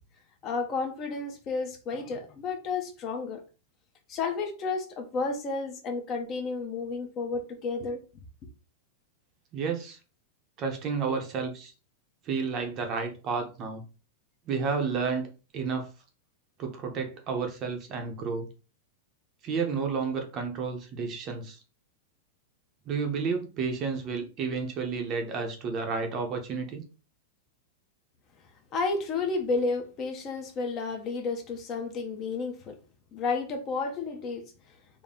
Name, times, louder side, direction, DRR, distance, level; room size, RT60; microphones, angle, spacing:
voice 1, 0.4-3.4 4.1-8.0 28.7-32.8 33.1-34.5, left 4 dB, 30° left, 0.8 m, -31 dB
voice 2, 9.5-10.0 10.6-11.7 12.3-13.8 14.5-15.9 16.6-18.5 19.4-21.6 22.9-26.8, right 5 dB, 30° right, 0.7 m, -31 dB
4.1 x 2.1 x 3.6 m
supercardioid pair, 160°, 0 cm